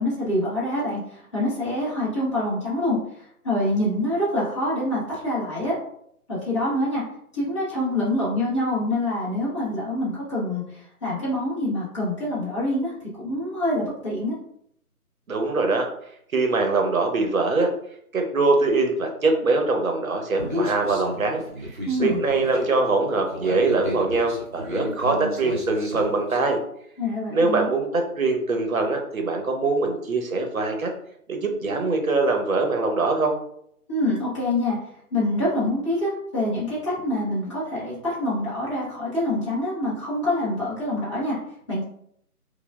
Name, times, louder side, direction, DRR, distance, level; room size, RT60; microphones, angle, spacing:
voice 1, 0.0-3.0 3.4-5.7 6.3-7.0 7.3-14.3 21.8-22.2 27.0-27.7 33.9-34.8 35.1-41.4 41.7-41.8, left 1 dB, 20° left, -10 dB, 0.9 m, -26 dB
voice 2, 15.3-15.9 16.3-17.7 18.1-26.6 27.3-30.9 31.3-33.3, right 3 dB, 65° right, 3 dB, 1.0 m, -23 dB
Human voice, 20.4-26.4, left 1 dB, 35° right, 0.8 m, -33 dB
5.1 x 2.3 x 2.3 m, 0.70 s
figure-of-eight pair, 170°, 46 cm